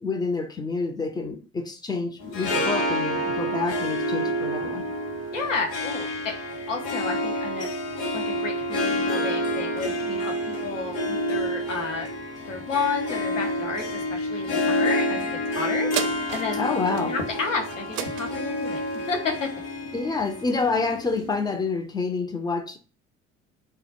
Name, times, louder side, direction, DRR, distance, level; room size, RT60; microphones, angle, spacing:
voice 1, 0.0-4.8 16.5-17.1 19.9-22.8, left 4 dB, 10° left, 0.3 m, -28 dB
Harp, 2.2-21.6, equal, 65° left, 0.9 m, -28 dB
voice 2, 5.3-6.3 6.7-7.7 8.1-12.1 12.5-15.9 16.3-18.8 19.1-19.5, left 4 dB, 90° left, 0.6 m, -31 dB
sound 1, 15.9-20.7 21.2-21.3, right 11 dB, 55° right, 0.5 m, -36 dB
2.1 x 2.0 x 2.9 m
figure-of-eight pair, 55°, 37 cm